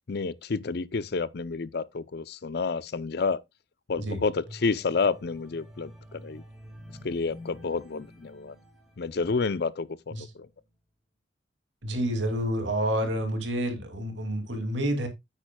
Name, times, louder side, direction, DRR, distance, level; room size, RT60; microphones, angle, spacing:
voice 1, 0.1-3.4 3.9-6.4 7.0-8.6 9.0-10.5, left 4 dB, 55° left, 0.5 m, -30 dB
sound 1, 4.4-9.7 10.2-10.4, equal, ahead, 2.1 m, -49 dB
voice 2, 11.8-15.1, right 1 dB, 80° right, 2.5 m, -29 dB
9.2 x 8.7 x 2.2 m
head